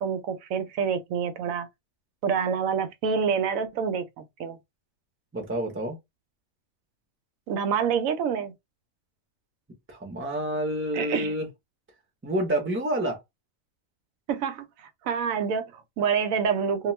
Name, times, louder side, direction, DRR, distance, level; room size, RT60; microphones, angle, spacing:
voice 1, 0.0-1.7 2.2-4.6 7.5-8.5 10.9-11.3 14.3-14.7 15.0-16.9, right 6 dB, 85° right, 1.0 m, -27 dB
voice 2, 5.3-6.0 9.9-11.5 12.2-13.2, right 1 dB, 10° right, 0.7 m, -28 dB
2.3 x 2.3 x 3.0 m
omnidirectional pair, 1.4 m